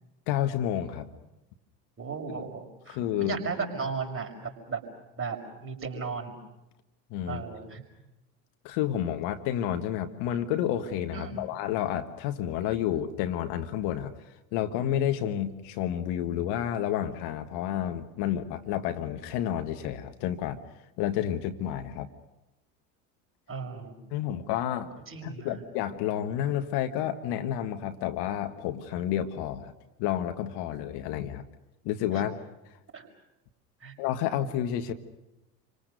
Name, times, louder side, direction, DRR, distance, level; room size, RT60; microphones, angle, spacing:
voice 1, 0.3-1.1 2.9-3.4 7.1-7.4 8.6-14.1 14.5-20.6 21.0-22.1 24.1-24.9 25.2-29.7 30.0-31.4 31.8-32.4 34.0-34.9, left 10 dB, 50° left, 8 dB, 1.6 m, -30 dB
voice 2, 2.0-4.8 5.2-6.4 7.3-7.8 11.1-11.4 23.5-24.0 25.1-25.6 32.1-32.2 32.9-33.1 33.8-33.9, right 5 dB, 25° right, 2 dB, 6.1 m, -35 dB
28.5 x 25.0 x 6.7 m, 0.97 s
figure-of-eight pair, 70°, 50 cm